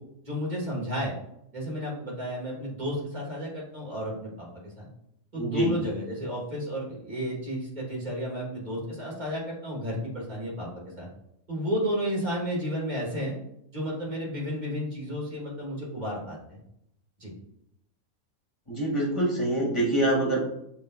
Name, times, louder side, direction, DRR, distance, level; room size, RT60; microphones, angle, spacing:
voice 1, 0.3-1.1 1.5-4.9 5.3-10.7 11.0-11.1 11.5-13.3 13.7-16.6 17.2-17.3, equal, 30° right, -5 dB, 1.7 m, -32 dB
voice 2, 5.4-5.7 18.7-20.4, right 1 dB, 20° left, -4 dB, 1.2 m, -25 dB
6.7 x 2.8 x 2.6 m, 0.76 s
omnidirectional pair, 1.6 m